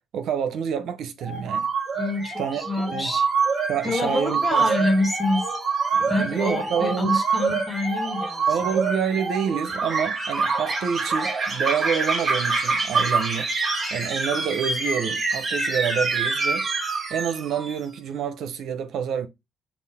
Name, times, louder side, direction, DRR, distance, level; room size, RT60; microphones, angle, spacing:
voice 1, 0.1-1.7 2.4-3.2 3.7-4.9 5.9-7.2 8.5-13.5 13.9-16.7 17.1-19.3, right 7 dB, 75° right, 0.6 m, -28 dB
sound 1, 1.2-17.8, right 4 dB, 40° right, 1.4 m, -26 dB
voice 2, 1.9-3.3 3.8-5.4 6.0-8.7, left 2 dB, 15° left, 1.7 m, -26 dB
5.5 x 2.5 x 3.3 m
cardioid pair, 90°, 0 cm